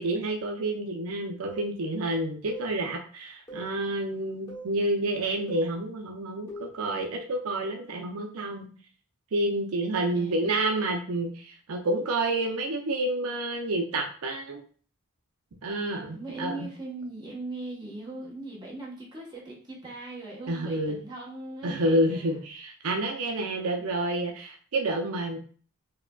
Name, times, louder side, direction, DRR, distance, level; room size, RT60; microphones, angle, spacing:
voice 1, 0.0-8.7 9.3-14.6 15.6-16.7 20.5-21.0 21.6-25.4, right 1 dB, 75° right, 2 dB, 0.5 m, -29 dB
sound 1, 1.5-1.7 2.5-2.7 3.5-3.7 4.5-4.7 5.5-5.7 6.5-6.8, right 2 dB, 15° left, 0.9 m, -41 dB
voice 2, 10.1-10.4 16.1-22.3, right 2 dB, 20° right, -4 dB, 1.0 m, -40 dB
4.7 x 2.1 x 2.2 m, 0.43 s
head